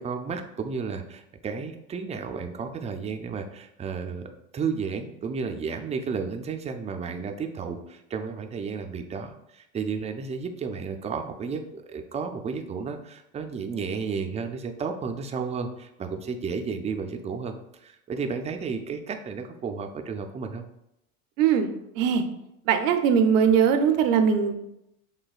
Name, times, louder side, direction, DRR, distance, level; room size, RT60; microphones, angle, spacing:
voice 1, 0.0-4.3 4.5-17.5 17.8-20.6, right 5 dB, 20° right, 6 dB, 0.3 m, -32 dB
voice 2, 21.4-22.2 22.7-24.7, right 7 dB, 90° right, 7 dB, 0.6 m, -21 dB
6.3 x 2.2 x 2.4 m, 0.81 s
supercardioid pair, 95°, 38 cm